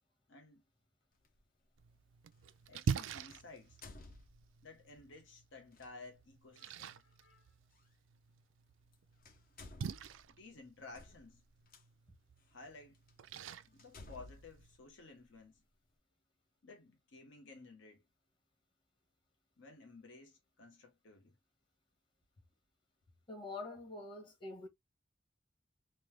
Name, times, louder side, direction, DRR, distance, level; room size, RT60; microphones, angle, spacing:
voice 1, 0.3-0.6 2.7-3.8 4.6-7.5 10.3-11.4 12.5-13.0 13.7-15.6 16.6-18.0 19.6-21.4, left 3 dB, 80° left, 0.9 m, -55 dB
sound 1, 1.2-1.4 3.3-4.8 5.7-5.9 7.8-7.9 8.8-8.9 9.2-11.8 12.5-12.6 13.1-13.2 13.8-15.6, left 2 dB, 50° left, 0.7 m, -56 dB
Splash splatter, 1.8-14.8, right 6 dB, 80° right, 0.3 m, -46 dB
voice 2, 23.3-24.7, left 2 dB, 25° left, 1.1 m, -45 dB
3.2 x 2.2 x 3.1 m
head